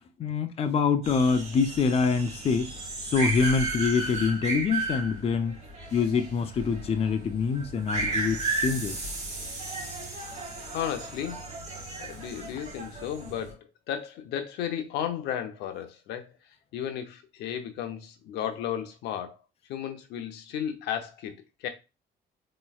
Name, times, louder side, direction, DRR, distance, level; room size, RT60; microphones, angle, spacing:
voice 1, 0.2-2.7 3.0-5.5 5.9-9.0, left 5 dB, 35° left, 0.5 m, -25 dB
sound 1, 1.0-13.5, right 3 dB, 40° right, 2.0 m, -34 dB
voice 2, 10.7-11.4 12.0-16.3 16.7-19.4 19.7-21.7, left 9 dB, 85° left, 0.7 m, -34 dB
4.0 x 3.1 x 2.3 m
cardioid pair, 110°, 17 cm